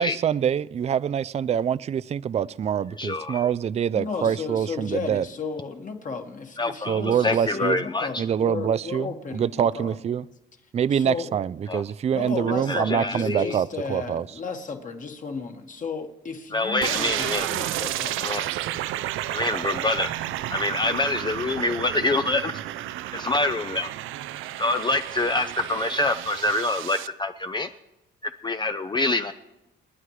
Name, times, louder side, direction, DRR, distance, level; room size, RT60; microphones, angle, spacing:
voice 1, 0.0-5.2 6.9-7.8 8.2-10.3 10.7-14.3, right 8 dB, 35° right, 0.4 m, -25 dB
voice 2, 3.0-3.4 6.6-8.2 11.7-11.8 12.7-13.6 16.5-17.5 18.2-18.5 19.3-20.1 20.5-22.5 23.1-23.9 24.6-27.7 28.4-29.3, left 2 dB, 25° left, 0.5 m, -26 dB
voice 3, 3.9-10.0 10.9-11.3 12.1-18.2, left 5 dB, 40° left, 1.8 m, -34 dB
sound 1, 16.8-27.1, right 13 dB, 85° right, 0.5 m, -31 dB
29.0 x 9.7 x 3.2 m
cardioid pair, 90°, 20 cm